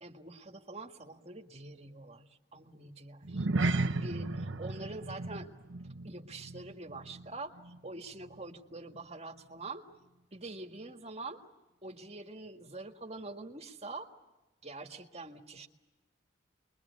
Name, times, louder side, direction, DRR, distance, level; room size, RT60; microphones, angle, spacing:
voice 1, 0.0-5.5 6.0-9.9 10.3-11.4 11.8-14.1 14.6-15.7, right 2 dB, 35° right, 3 dB, 1.8 m, -45 dB
sound 1, 3.2-7.9 8.1-8.4 8.9-9.0, right 2 dB, 85° right, 1.0 m, -35 dB
29.0 x 22.5 x 8.4 m, 1.1 s
head